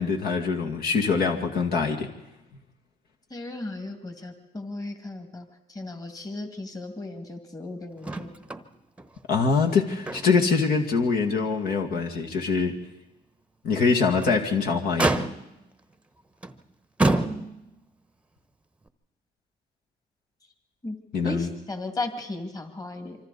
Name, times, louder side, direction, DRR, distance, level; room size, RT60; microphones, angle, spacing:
voice 1, 0.0-2.1 9.3-12.7 13.6-15.3 21.1-21.5, left 5 dB, 65° left, 1 dB, 2.2 m, -24 dB
voice 2, 3.3-8.4 20.8-21.0 21.2-23.2, left 2 dB, 20° left, 5 dB, 2.3 m, -36 dB
Motor vehicle (road), 8.0-8.7 9.0-9.1 9.6-10.5 11.0-11.1 11.6-11.7 14.0-14.4 15.0-15.7 16.4-16.6 17.0-17.8 18.9-19.0, right 2 dB, 5° right, 1.0 m, -27 dB
26.0 x 25.0 x 4.2 m, 0.93 s
cardioid pair, 110°, 17 cm